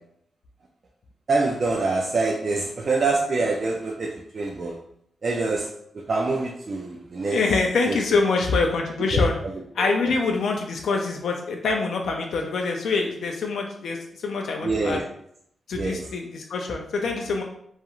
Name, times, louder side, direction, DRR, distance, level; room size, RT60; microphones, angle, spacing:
voice 1, 1.3-4.7 5.2-5.7 6.1-7.4 7.9-8.0 9.1-9.2 14.6-15.0 15.8-16.0, right 3 dB, 40° right, -1 dB, 0.3 m, -25 dB
voice 2, 7.2-9.4 9.7-15.0 15.7-17.4, left 4 dB, 75° left, 2 dB, 0.3 m, -25 dB
2.4 x 2.3 x 2.9 m, 0.71 s
wide cardioid pair, 135°, 0 cm